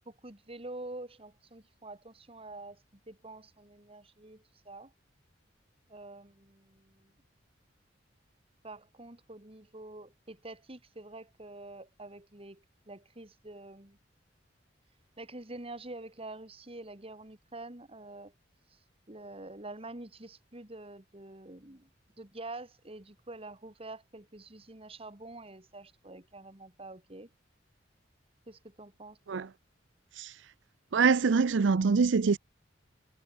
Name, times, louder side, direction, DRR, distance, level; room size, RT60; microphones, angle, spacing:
voice 1, 0.1-4.9 5.9-7.1 8.6-14.0 15.2-18.3 18.7-18.8 19.1-21.9 22.2-27.3 28.5-29.5, right 2 dB, 30° right, 2.3 m, -47 dB
voice 2, 30.9-32.4, right 5 dB, 75° right, 0.5 m, -24 dB
head